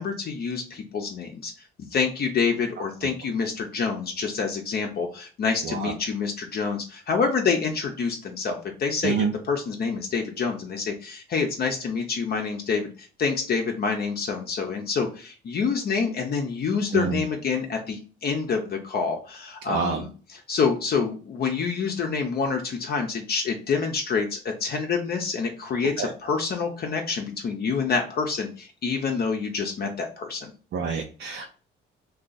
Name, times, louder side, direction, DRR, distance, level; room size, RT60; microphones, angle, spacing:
voice 1, 0.0-1.5 1.9-30.5, left 5 dB, 50° left, 2 dB, 0.6 m, -27 dB
voice 2, 19.7-20.0 26.0-26.1 30.7-31.6, right 6 dB, 65° right, 1 dB, 0.5 m, -27 dB
2.5 x 2.3 x 3.8 m, 0.38 s
cardioid pair, 90°, 20 cm